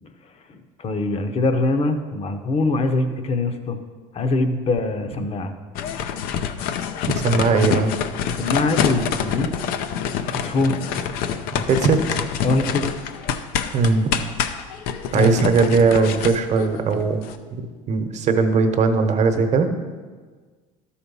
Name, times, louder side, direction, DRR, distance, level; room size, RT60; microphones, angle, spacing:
voice 1, 0.8-3.8 4.1-5.5 8.3-9.5 10.4-10.8 12.4-12.9 15.1-15.4, left 2 dB, 40° left, 8 dB, 0.9 m, -22 dB
sound 1, 5.8-17.4, left 8 dB, 70° left, 0.6 m, -26 dB
voice 2, 7.2-7.9 11.7-12.2 13.7-14.1 15.1-17.2 17.6-19.7, right 4 dB, 45° right, 7 dB, 1.0 m, -19 dB
12.0 x 4.3 x 5.5 m, 1.5 s
supercardioid pair, 95°, 16 cm